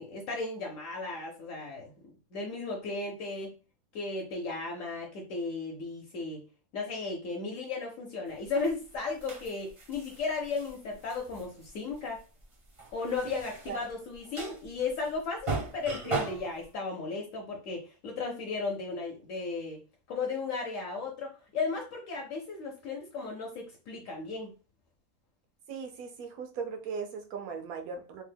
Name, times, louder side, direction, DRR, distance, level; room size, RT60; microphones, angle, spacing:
voice 1, 0.0-1.9 2.3-3.5 3.9-6.4 6.7-12.2 12.9-19.8 20.1-24.5, left 4 dB, 70° left, 0 dB, 1.0 m, -35 dB
sound 1, 8.4-16.6, right 3 dB, 40° right, 0.5 m, -39 dB
voice 2, 25.7-28.2, right 5 dB, 90° right, 5 dB, 1.1 m, -38 dB
3.1 x 2.0 x 3.3 m, 0.33 s
omnidirectional pair, 1.5 m